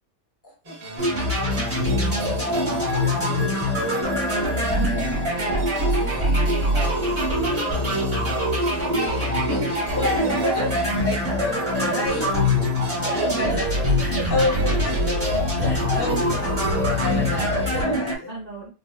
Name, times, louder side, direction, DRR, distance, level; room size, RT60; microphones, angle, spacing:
voice 1, 0.4-0.8 5.3-5.5 8.9-9.6 10.0-10.1 10.4-10.5 11.0-11.4 11.9-12.3 13.1-13.6 14.3-15.4 16.0-16.5 16.8-18.3, left 2 dB, 25° left, 0 dB, 0.6 m, -30 dB
sound 1, 0.6-17.8, left 1 dB, 70° right, 1.3 m, -34 dB
sound 2, 1.0-18.2, equal, 20° right, 1.2 m, -23 dB
voice 2, 2.3-4.6 5.0-5.2 5.5-5.6 6.0-6.9 7.4-10.7 11.7-12.4 13.0-13.6 14.0-14.8 15.6-16.6 17.7-18.0 18.3-18.7, right 2 dB, 50° right, -4 dB, 0.8 m, -36 dB
3.6 x 2.3 x 2.2 m, 0.32 s
omnidirectional pair, 1.4 m